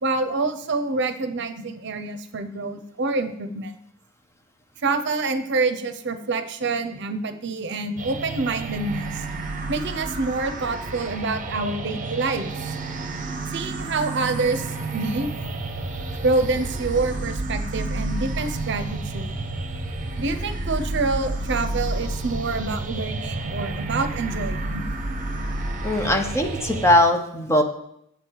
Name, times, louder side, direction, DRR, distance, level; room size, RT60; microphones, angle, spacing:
voice 1, 0.0-3.7 4.8-9.3 9.7-12.7 13.5-15.3 16.2-19.3 20.2-24.8, right 3 dB, 60° right, 10 dB, 0.7 m, -27 dB
sound 1, 8.0-26.9, right 2 dB, 40° right, 1.0 m, -30 dB
voice 2, 25.8-27.6, left 1 dB, 15° left, 4 dB, 0.9 m, -20 dB
8.4 x 7.2 x 4.6 m, 0.75 s
head